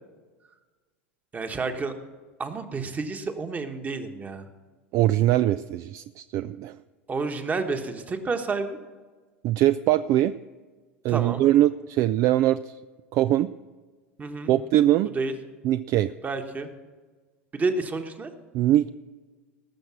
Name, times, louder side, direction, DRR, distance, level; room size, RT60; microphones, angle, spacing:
voice 1, 1.3-1.9 2.4-4.4 7.1-8.8 11.1-11.4 14.2-14.5 15.1-15.3 16.2-16.7 17.5-18.3, right 3 dB, 20° right, 7 dB, 1.3 m, -30 dB
voice 2, 4.9-6.8 9.4-10.4 11.0-12.8 13.1-13.5 14.5-15.1 15.6-16.1 18.5-18.9, right 13 dB, 50° right, 14 dB, 0.3 m, -22 dB
18.5 x 6.5 x 6.2 m, 1.3 s
hypercardioid pair, 95°, 7 cm